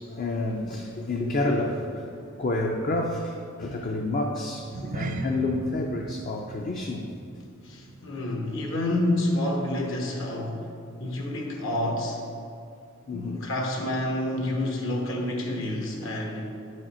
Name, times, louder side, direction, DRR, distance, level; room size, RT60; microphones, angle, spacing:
voice 1, 0.0-7.2 13.1-13.5, left 2 dB, 40° left, 1 dB, 0.5 m, -29 dB
sound 1, 4.6-9.2 9.5-9.8 10.3-10.4, right 3 dB, 40° right, 0.3 m, -39 dB
voice 2, 7.6-10.7 11.0-12.2 13.1-16.6, left 1 dB, 70° left, 1 dB, 1.1 m, -28 dB
9.2 x 4.9 x 4.3 m, 2.4 s
head